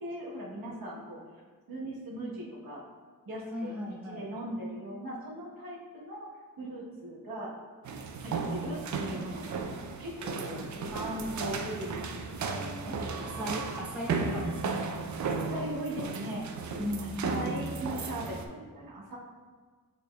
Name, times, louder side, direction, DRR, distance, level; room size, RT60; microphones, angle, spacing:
voice 1, 0.0-1.2 1.7-2.8 3.2-6.3 6.6-7.5 8.2-9.6 10.0-13.0 13.3-13.6 15.1-16.5 17.0-19.2, right 1 dB, 70° right, -4 dB, 1.1 m, -39 dB
voice 2, 3.5-4.3 10.6-11.6 12.9-14.8 16.8-17.5, left 1 dB, 5° right, -4 dB, 0.7 m, -39 dB
sound 1, 7.8-18.5, right 4 dB, 55° right, 0.4 m, -35 dB
6.5 x 3.4 x 2.3 m, 1.5 s
wide cardioid pair, 90°, 36 cm